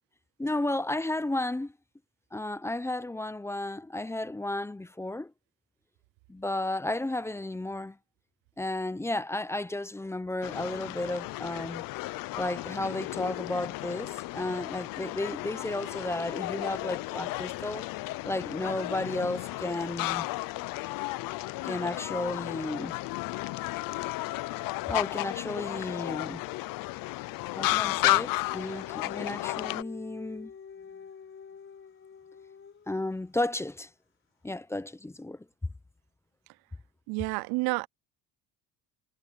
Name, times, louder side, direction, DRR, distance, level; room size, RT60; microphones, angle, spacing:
voice 1, 0.4-1.7 2.3-5.3 6.3-8.0 8.6-11.8 12.4-17.9 18.2-20.3 21.6-23.0 24.9-26.4 27.6-30.5 32.9-33.9 34.4-35.4, left 2 dB, 5° left, 0.7 m, -33 dB
sound 1, 10.4-29.8, left 20 dB, 65° left, 0.6 m, -33 dB
Dog, 27.9-33.1, left 6 dB, 35° left, 5.2 m, -47 dB
voice 2, 37.1-37.9, right 25 dB, 85° right, 0.5 m, -29 dB
cardioid pair, 125°, 36 cm